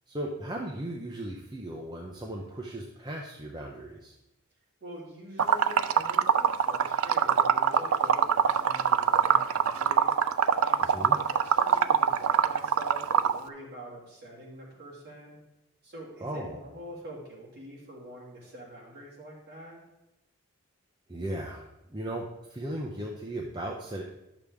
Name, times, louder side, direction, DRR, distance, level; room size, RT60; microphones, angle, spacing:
voice 1, 0.1-4.1 10.9-11.2 16.2-16.6 21.1-24.0, right 1 dB, 20° right, -1 dB, 0.7 m, -36 dB
voice 2, 4.8-10.2 10.6-15.4 15.8-19.8, right 1 dB, 45° right, -5 dB, 3.0 m, -45 dB
Liquid, 5.4-13.4, right 8 dB, 75° right, 0.4 m, -23 dB
11.5 x 6.9 x 3.5 m, 0.93 s
head